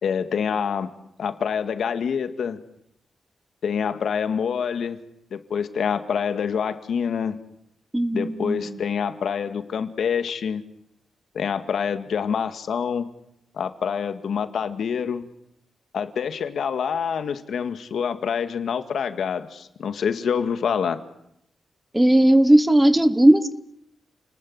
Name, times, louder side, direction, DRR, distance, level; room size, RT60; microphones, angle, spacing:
voice 1, 0.0-0.9 1.2-2.6 3.6-5.0 5.3-7.4 8.1-10.6 11.3-13.1 13.5-15.3 15.9-21.0, left 7 dB, 70° left, 9 dB, 2.1 m, -26 dB
voice 2, 7.9-8.8 21.9-23.5, right 1 dB, 5° right, 13 dB, 1.0 m, -17 dB
29.5 x 20.0 x 9.7 m, 0.77 s
wide cardioid pair, 165°, 0 cm